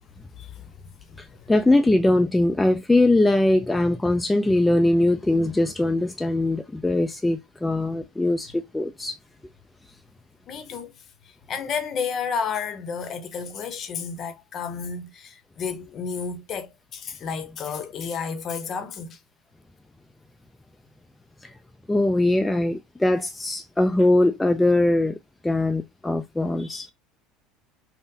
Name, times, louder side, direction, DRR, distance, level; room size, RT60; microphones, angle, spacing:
voice 1, 0.3-1.5 10.5-19.2, left 6 dB, 45° left, 0.8 m, -32 dB
voice 2, 1.2-9.2 21.4-21.5 21.9-25.2 25.4-26.9, left 2 dB, 10° left, 0.3 m, -21 dB
3.7 x 2.1 x 2.7 m
supercardioid pair, 95°, 0 cm